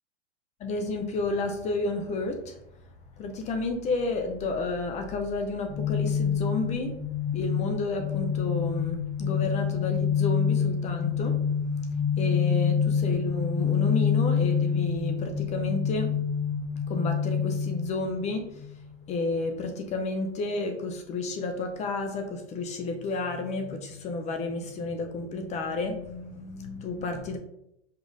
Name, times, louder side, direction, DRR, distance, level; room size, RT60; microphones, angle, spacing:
voice 1, 0.6-2.6 3.2-7.0 7.3-11.4 11.8-16.2 16.9-18.7 19.1-27.4, left 3 dB, 20° left, 5 dB, 0.5 m, -31 dB
sound 1, 5.7-18.7, left 7 dB, 20° right, 1.0 m, -27 dB
5.1 x 2.4 x 4.0 m, 0.78 s
hypercardioid pair, 130°, 35 cm